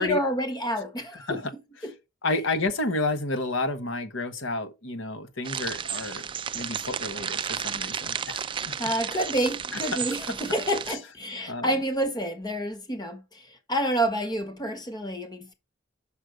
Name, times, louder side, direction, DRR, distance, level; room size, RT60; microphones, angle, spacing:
voice 1, 0.0-1.4 1.8-1.9 8.8-15.5, right 1 dB, 20° left, 1.3 m, -28 dB
voice 2, 2.2-6.2 6.5-8.7 10.9-11.0 11.5-11.7, left 2 dB, 70° left, 1.3 m, -30 dB
sound 1, 5.4-10.9, right 7 dB, 25° right, 0.4 m, -33 dB
6.4 x 5.4 x 5.2 m
head